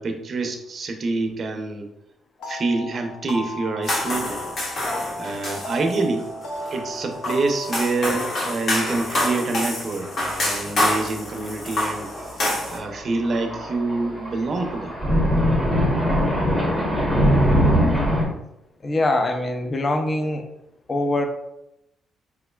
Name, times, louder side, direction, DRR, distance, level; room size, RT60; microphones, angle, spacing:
voice 1, 0.0-1.9 2.5-4.4 5.2-6.3 6.7-12.1 12.7-15.0, right 3 dB, 50° right, 5 dB, 0.5 m, -26 dB
sound 1, 2.4-9.9, left 1 dB, 80° left, 0.7 m, -35 dB
sound 2, 3.8-12.8, left 1 dB, 55° left, 1.1 m, -27 dB
Thunder, 10.2-10.6 10.9-11.0 12.0-18.3, equal, 10° left, 0.9 m, -21 dB
voice 2, 18.8-20.5 20.9-21.2, left 2 dB, 35° left, 5 dB, 0.5 m, -23 dB
3.5 x 3.1 x 2.3 m, 0.86 s
cardioid pair, 90°, 0 cm